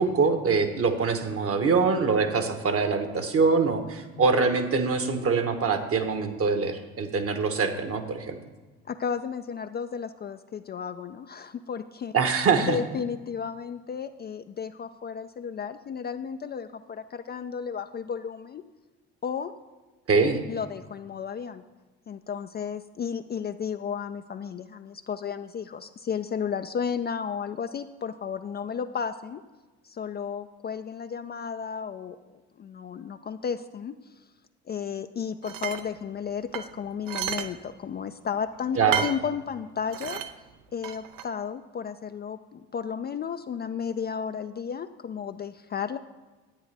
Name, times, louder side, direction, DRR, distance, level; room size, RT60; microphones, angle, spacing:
voice 1, 0.0-8.4 12.1-12.8 20.1-20.4 38.8-39.0, right 4 dB, 40° right, 7 dB, 1.1 m, -24 dB
voice 2, 8.9-12.1 12.6-18.6 19.2-19.5 20.5-21.6 22.1-29.4 29.8-33.9 34.7-40.2 40.7-46.0, left 7 dB, 30° left, 9 dB, 0.4 m, -33 dB
sound 1, 35.4-35.8 36.5-37.5 37.8-37.9 38.9-39.2 39.9-40.3 40.8-41.2, right 9 dB, 65° right, 0.7 m, -31 dB
10.0 x 8.8 x 3.4 m, 1.3 s
hypercardioid pair, 60°, 34 cm